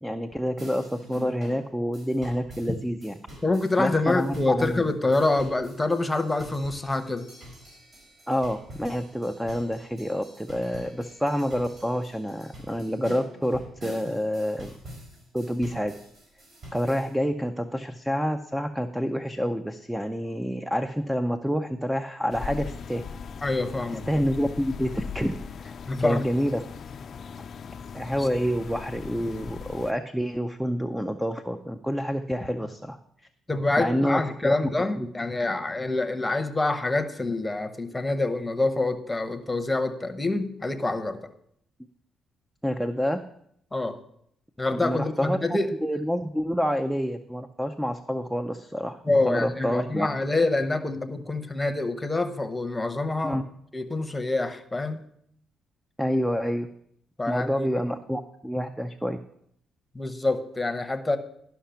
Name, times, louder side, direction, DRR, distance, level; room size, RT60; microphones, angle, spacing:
voice 1, 0.0-3.1 3.8-4.8 8.3-14.7 15.3-15.9 16.7-23.0 24.1-25.3 25.6-26.6 27.9-33.0 33.8-34.5 35.0-35.1 42.6-43.2 44.7-45.4 45.8-49.0 49.3-50.1 53.2-53.4 56.0-56.7 57.3-59.2, equal, 5° right, 8 dB, 0.5 m, -28 dB
sound 1, 0.6-17.1, right 1 dB, 55° right, 4.7 m, -46 dB
voice 2, 3.4-7.3 23.4-24.1 25.9-26.2 28.2-28.3 33.5-41.2 43.7-44.0 44.6-45.7 49.0-53.4 53.7-55.0 57.2-57.7 59.9-61.2, left 2 dB, 15° left, 8 dB, 0.9 m, -26 dB
sound 2, 22.3-29.9, left 6 dB, 50° left, 0.4 m, -39 dB
11.5 x 5.8 x 5.7 m, 0.71 s
cardioid pair, 90°, 0 cm